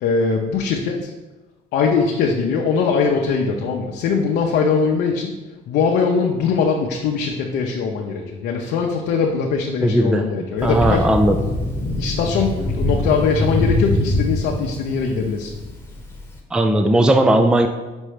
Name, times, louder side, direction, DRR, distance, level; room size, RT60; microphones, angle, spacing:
voice 1, 0.0-1.1 1.7-5.3 5.7-11.0 12.0-15.5, left 5 dB, 80° left, 0 dB, 0.7 m, -21 dB
voice 2, 9.8-10.3 10.6-11.4 16.5-17.7, right 1 dB, 5° right, 5 dB, 0.4 m, -16 dB
Thunder, 10.6-16.3, left 1 dB, 15° left, 1.1 m, -23 dB
5.3 x 4.4 x 5.0 m, 1.2 s
cardioid pair, 110°, 17 cm